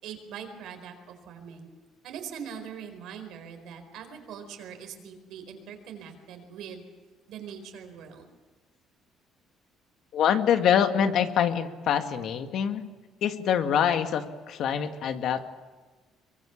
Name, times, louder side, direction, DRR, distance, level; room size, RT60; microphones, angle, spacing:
voice 1, 0.0-1.7 2.0-6.8 7.3-8.3, right 7 dB, 75° right, 6 dB, 4.5 m, -42 dB
voice 2, 10.1-12.8 13.2-15.5, left 8 dB, 60° left, 7 dB, 1.8 m, -25 dB
24.5 x 23.0 x 7.2 m, 1.3 s
cardioid pair, 135°, 0 cm